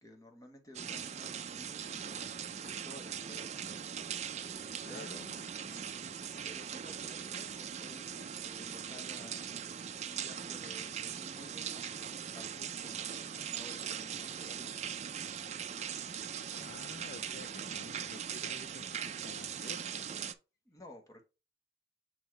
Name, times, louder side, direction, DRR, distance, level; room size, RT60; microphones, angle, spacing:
voice 1, 0.0-3.6 4.5-5.3 6.4-11.9 12.3-14.8 20.6-21.3, left 1 dB, 20° left, 1.1 m, -54 dB
sound 1, 0.7-20.3, right 8 dB, 35° right, 0.4 m, -40 dB
voice 2, 4.8-6.0 15.8-20.1, left 4 dB, 50° left, 0.4 m, -52 dB
7.1 x 3.0 x 4.5 m
head